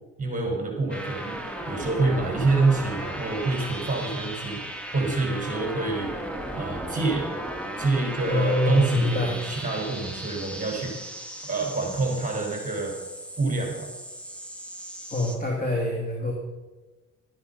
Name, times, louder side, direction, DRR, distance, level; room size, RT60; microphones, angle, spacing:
voice 1, 0.2-6.1 6.5-7.3 7.8-10.9 11.5-12.9 13.4-13.9, right 3 dB, 25° right, 0 dB, 4.4 m, -27 dB
sound 1, 0.9-15.4, right 1 dB, 5° left, 1.9 m, -36 dB
voice 2, 8.3-9.4 15.1-16.3, left 2 dB, 30° left, 0 dB, 2.6 m, -25 dB
13.0 x 10.5 x 5.5 m, 1.2 s
cardioid pair, 90°, 30 cm